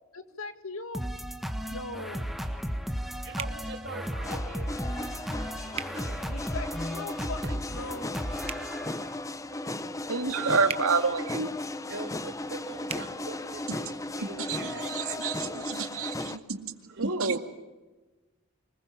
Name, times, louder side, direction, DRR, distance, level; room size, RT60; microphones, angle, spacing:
voice 1, 0.1-1.1 1.6-2.3 6.3-8.3, left 3 dB, 80° left, 9 dB, 2.1 m, -40 dB
sound 1, 0.9-9.2, equal, ahead, 1.6 m, -35 dB
voice 2, 2.4-2.8 3.2-6.5 7.4-7.6 10.4-10.5 10.7-10.8 11.9-15.7 16.9-17.0, right 2 dB, 55° right, 4 dB, 4.2 m, -43 dB
sound 2, 3.4-3.6 5.7-5.9 8.4-8.7 10.6-10.9 12.8-13.0, right 6 dB, 30° right, 1.0 m, -36 dB
sound 3, 4.2-16.4, left 2 dB, 15° left, 0.8 m, -36 dB
voice 3, 9.5-11.5 13.8-17.4, right 4 dB, 85° right, 7 dB, 2.2 m, -30 dB
24.5 x 21.0 x 7.3 m, 1.2 s
head